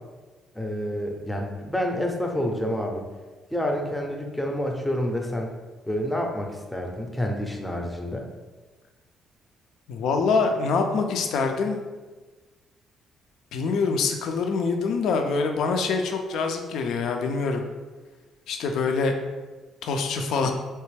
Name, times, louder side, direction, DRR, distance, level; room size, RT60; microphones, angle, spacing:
voice 1, 0.5-3.0 3.5-5.5 5.9-8.3, left 1 dB, 5° left, 1 dB, 0.5 m, -28 dB
voice 2, 9.9-11.8 13.5-17.6 18.5-19.2 19.8-20.5, left 4 dB, 75° left, 4 dB, 0.4 m, -25 dB
3.3 x 3.0 x 3.2 m, 1.3 s
cardioid pair, 125°, 0 cm